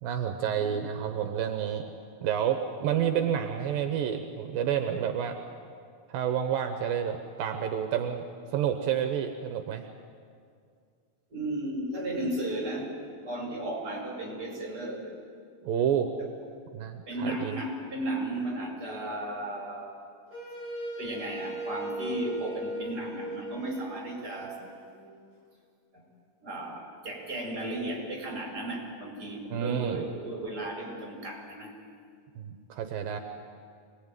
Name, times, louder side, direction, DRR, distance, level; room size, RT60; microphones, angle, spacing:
voice 1, 0.0-1.8 2.2-5.4 6.1-8.2 8.5-9.8 15.6-16.1 16.7-17.6 29.5-30.0 32.4-33.2, right 9 dB, 80° right, 5 dB, 2.8 m, -29 dB
voice 2, 11.3-15.1 16.2-16.3 17.1-20.0 21.0-24.6 25.9-26.0 26.4-31.7, right 1 dB, 25° right, 0 dB, 5.7 m, -35 dB
Wind instrument woodwind instrument, 20.3-25.2, right 2 dB, 30° left, 5.8 m, -38 dB
25.0 x 20.0 x 9.2 m, 2.2 s
omnidirectional pair, 4.1 m